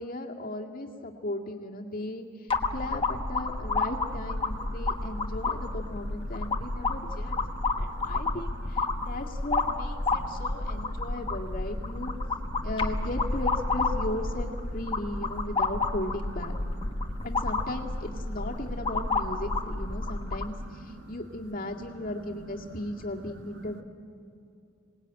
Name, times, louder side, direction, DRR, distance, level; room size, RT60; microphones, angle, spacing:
voice 1, 0.0-7.4 7.8-12.1 12.6-16.6 17.2-23.8, left 1 dB, 40° left, 0 dB, 2.0 m, -36 dB
sound 1, 2.5-20.5, left 3 dB, 25° left, 1.2 m, -30 dB
voice 2, 4.5-4.9 6.3-6.9 7.3-7.9 8.2-8.4 8.6-9.0 10.1-11.3 11.5-11.6 12.1-12.2 12.6-12.7 16.8-17.2 19.9-21.1 22.3-22.4 22.6-22.8, right 1 dB, 55° right, 4 dB, 1.7 m, -49 dB
26.5 x 19.0 x 9.0 m, 2.6 s
head